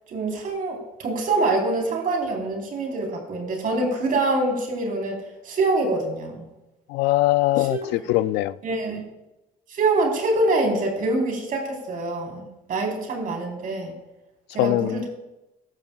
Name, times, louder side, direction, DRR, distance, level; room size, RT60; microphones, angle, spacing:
voice 1, 0.1-6.5 7.6-7.8 8.1-8.2 8.6-9.0 9.7-13.9 14.5-15.1, right 2 dB, 55° right, 4.1 m, -25 dB
voice 2, 6.9-8.6 14.6-15.0, left 16 dB, 90° left, 0.4 m, -22 dB
15.5 x 12.0 x 2.4 m
cardioid pair, 110°, 17 cm